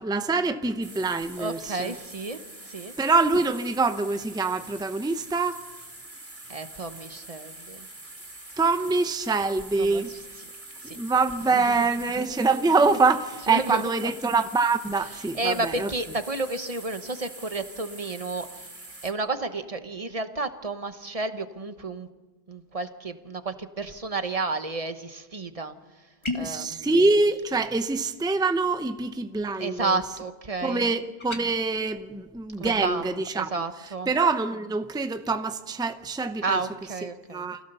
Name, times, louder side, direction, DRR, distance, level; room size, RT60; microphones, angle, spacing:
voice 1, 0.0-1.9 3.0-5.6 8.6-10.2 10.8-15.9 26.3-30.0 30.6-33.5 34.1-36.6 37.3-37.6, right 3 dB, 5° right, 0.7 m, -25 dB
sound 1, 0.8-19.1, right 2 dB, 75° right, 3.5 m, -44 dB
voice 2, 1.4-2.9 6.5-7.9 9.8-10.0 10.8-11.0 11.5-11.7 13.5-13.9 15.3-18.7 19.0-22.1 22.5-25.7 26.3-26.9 29.6-30.8 32.6-34.1 36.4-37.5, right 3 dB, 35° right, 1.1 m, -31 dB
sound 2, 26.2-26.6 31.2-31.5, left 2 dB, 25° left, 1.9 m, -32 dB
26.0 x 17.0 x 6.9 m
omnidirectional pair, 1.0 m